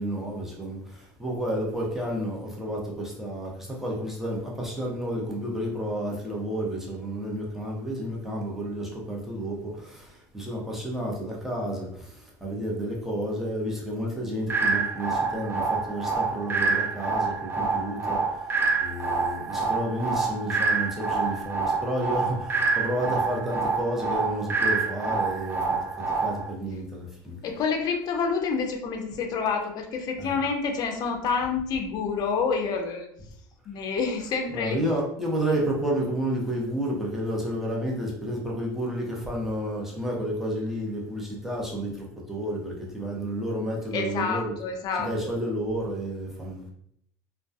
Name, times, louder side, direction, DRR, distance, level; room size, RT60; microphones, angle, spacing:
voice 1, 0.0-18.5 18.8-27.4 30.2-30.4 34.5-44.6 45.0-46.7, right 1 dB, 5° right, -3 dB, 0.8 m, -31 dB
sound 1, 14.5-26.5, right 4 dB, 25° right, 0.4 m, -27 dB
voice 2, 27.4-33.1 33.7-34.8 43.9-45.4, left 5 dB, 50° left, 3 dB, 0.5 m, -28 dB
2.3 x 2.2 x 2.6 m, 0.69 s
supercardioid pair, 95°, 9 cm